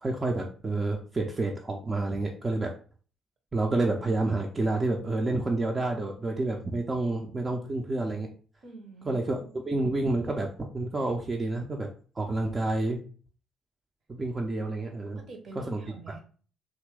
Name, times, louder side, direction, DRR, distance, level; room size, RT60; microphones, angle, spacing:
voice 1, 0.0-2.7 3.5-8.3 9.1-9.4 9.7-11.9 12.2-13.0 14.1-15.2 15.6-15.8, right 2 dB, 30° right, 1 dB, 0.5 m, -29 dB
voice 2, 8.6-9.2 9.5-9.7 15.2-16.2, right 3 dB, 55° right, 3 dB, 0.8 m, -46 dB
2.9 x 2.5 x 3.2 m, 0.42 s
figure-of-eight pair, 45°, 0 cm